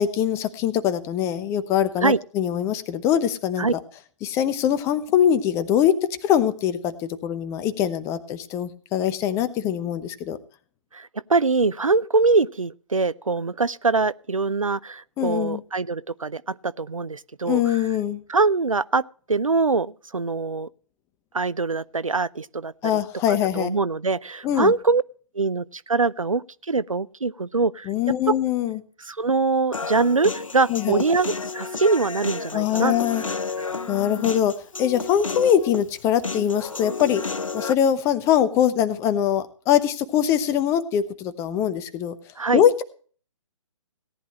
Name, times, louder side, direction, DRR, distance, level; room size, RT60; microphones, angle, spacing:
voice 1, 0.0-3.7 4.2-10.4 15.2-15.6 17.5-18.2 22.8-23.7 24.4-24.7 27.9-28.8 30.7-31.0 32.5-33.2 33.9-34.5 34.8-37.2 37.5-42.1 42.5-42.8, left 10 dB, 15° left, 0.9 m, -22 dB
voice 2, 10.9-17.8 18.3-19.0 19.3-20.7 21.3-23.0 23.3-25.0 25.3-27.9 29.0-32.9 42.4-42.6, right 4 dB, 80° right, 0.7 m, -23 dB
Human voice, 29.7-37.7, left 4 dB, 75° left, 0.8 m, -32 dB
18.0 x 10.5 x 3.0 m
figure-of-eight pair, 135°, 17 cm